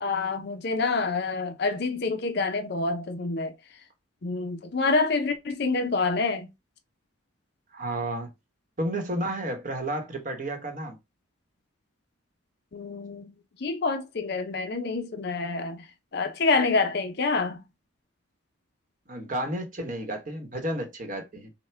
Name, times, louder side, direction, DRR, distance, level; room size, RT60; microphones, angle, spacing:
voice 1, 0.0-3.5 4.2-6.5 12.7-13.3 13.6-15.8 16.1-17.6, left 3 dB, 50° left, 0.5 m, -27 dB
voice 2, 7.7-8.3 8.8-11.0 19.1-21.5, right 1 dB, 40° right, 1.0 m, -31 dB
5.8 x 2.1 x 3.3 m
head